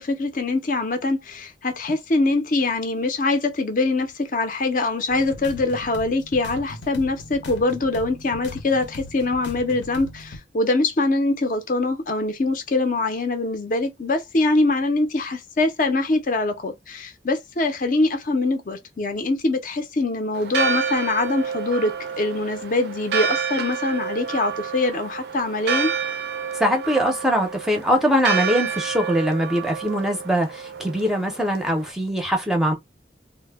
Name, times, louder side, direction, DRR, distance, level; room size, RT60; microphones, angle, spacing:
voice 1, 0.0-25.9, left 2 dB, 45° left, 0.5 m, -23 dB
sound 1, 5.1-10.4, left 2 dB, 90° left, 0.6 m, -39 dB
Church bell, 20.3-31.9, right 7 dB, 65° right, 0.4 m, -29 dB
voice 2, 26.6-32.7, equal, 5° right, 0.5 m, -22 dB
2.1 x 2.0 x 3.3 m
head